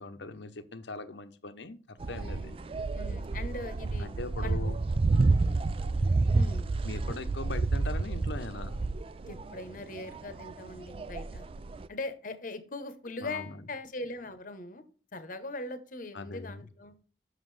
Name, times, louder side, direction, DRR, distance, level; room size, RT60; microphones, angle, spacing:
voice 1, 0.0-2.5 4.0-4.8 6.8-8.8 13.1-13.7 16.1-16.6, left 3 dB, 70° left, 11 dB, 0.8 m, -40 dB
sound 1, 2.0-11.9, right 3 dB, 30° right, 0.3 m, -30 dB
voice 2, 2.1-2.7 2.9-4.1 4.4-4.6 6.3-6.7 9.3-11.5 11.9-14.8 15.1-16.9, left 2 dB, 45° left, 10 dB, 0.9 m, -40 dB
7.3 x 6.4 x 3.2 m, 0.40 s
head